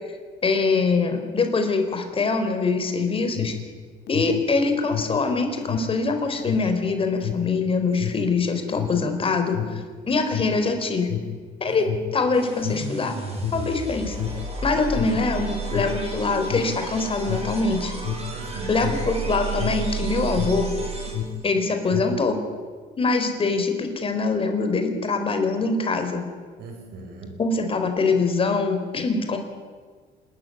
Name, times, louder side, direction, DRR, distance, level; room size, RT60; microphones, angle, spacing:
voice 1, 0.4-3.5 4.1-9.6 10.1-11.1 11.6-13.2 13.5-14.1 14.6-17.9 18.7-20.7 21.4-22.4 23.0-26.2 27.4-29.4, left 4 dB, 35° left, 6 dB, 4.2 m, -23 dB
Alarm, 3.1-20.7 21.0-22.3, left 9 dB, 70° left, 2.9 m, -31 dB
sound 1, 12.3-21.5, right 4 dB, 35° right, 7.6 m, -32 dB
voice 2, 14.7-15.3 18.3-18.9 26.6-27.4, right 3 dB, 75° right, 4 dB, 6.4 m, -39 dB
27.5 x 13.5 x 9.8 m, 1.6 s
cardioid pair, 110°, 17 cm